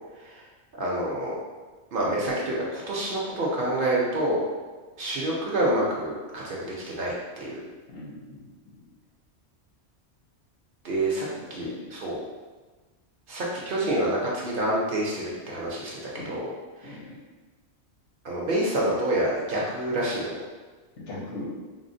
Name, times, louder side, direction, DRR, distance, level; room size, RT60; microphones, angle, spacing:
voice 1, 0.8-1.3 1.9-4.4 5.0-7.6 10.8-12.2 13.3-16.0 16.3-16.5 16.8-17.0 18.2-20.4, right 1 dB, 60° right, -4 dB, 0.7 m, -27 dB
voice 2, 7.9-8.8 11.3-11.9 16.1-16.4 16.8-17.2 21.0-21.5, left 2 dB, 85° left, -4 dB, 1.1 m, -40 dB
3.6 x 2.0 x 2.5 m, 1.3 s
omnidirectional pair, 1.2 m